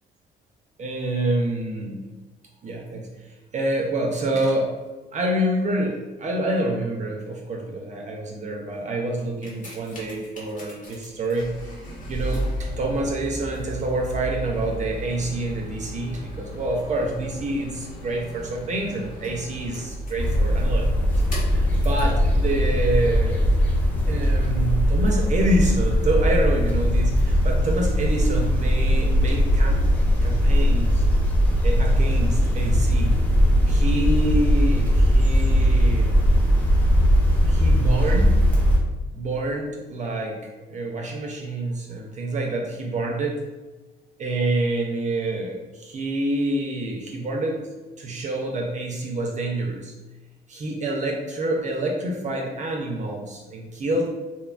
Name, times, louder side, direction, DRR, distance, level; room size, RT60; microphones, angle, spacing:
voice 1, 0.8-2.0 2.6-3.1 3.5-4.7 5.1-11.8 12.1-20.9 21.4-23.4 24.1-29.8 30.2-31.0 31.6-33.2 33.7-36.2 37.4-38.4 39.1-40.4 40.7-43.4 44.2-47.6 48.0-49.9 50.5-54.1, right 1 dB, 40° right, 0 dB, 0.4 m, -27 dB
sound 1, 9.2-22.2 22.9-23.0, right 1 dB, 45° left, 1.0 m, -35 dB
sound 2, 20.2-38.8, equal, 10° left, 0.6 m, -19 dB
2.7 x 2.2 x 2.3 m, 1.2 s
cardioid pair, 85°, 18 cm